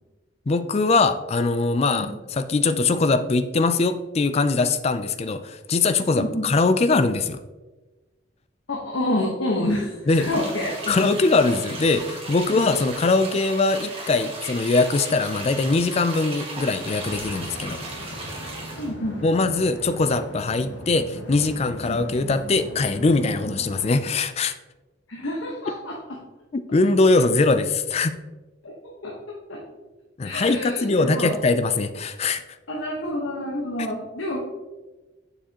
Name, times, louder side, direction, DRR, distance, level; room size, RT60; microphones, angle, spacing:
voice 1, 0.5-7.4 10.1-10.3 10.9-17.8 19.2-24.5 26.7-28.2 30.2-32.4, left 3 dB, 35° left, 10 dB, 0.4 m, -22 dB
voice 2, 6.1-6.5 8.7-11.0 12.5-12.7 18.8-19.3 21.8-22.0 23.4-23.5 25.1-26.0 28.6-28.7 29.0-29.1 29.5-29.6 30.2-31.3 32.7-34.4, left 1 dB, 85° left, -3 dB, 1.2 m, -28 dB
sound 1, 10.1-18.9, right 2 dB, 30° right, 1.5 m, -36 dB
sound 2, 17.0-23.9, equal, 70° left, 1.7 m, -38 dB
7.2 x 6.8 x 2.9 m, 1.2 s
head